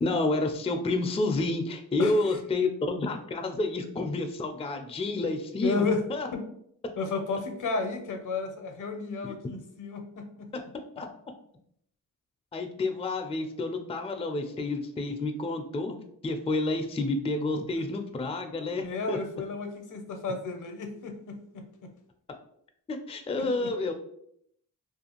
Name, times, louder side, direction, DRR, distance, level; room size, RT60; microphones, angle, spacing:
voice 1, 0.0-5.8 6.1-6.3 9.2-9.3 11.0-11.1 12.5-16.0 16.2-19.2 22.9-23.9, left 2 dB, 20° left, 5 dB, 0.3 m, -29 dB
voice 2, 5.6-6.0 6.3-6.4 7.0-10.5 18.8-21.9 23.4-23.7, left 4 dB, 65° left, 5 dB, 0.6 m, -32 dB
2.5 x 2.3 x 2.8 m, 0.70 s
cardioid pair, 55°, 34 cm